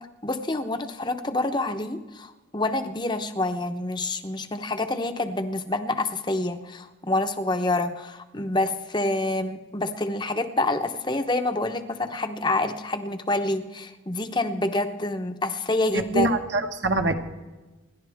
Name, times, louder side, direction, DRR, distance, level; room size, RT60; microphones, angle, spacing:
voice 1, 0.0-16.3, left 2 dB, 25° left, 7 dB, 0.8 m, -27 dB
voice 2, 15.9-17.1, right 2 dB, 65° right, 5 dB, 1.4 m, -24 dB
27.5 x 11.5 x 3.5 m, 1.2 s
head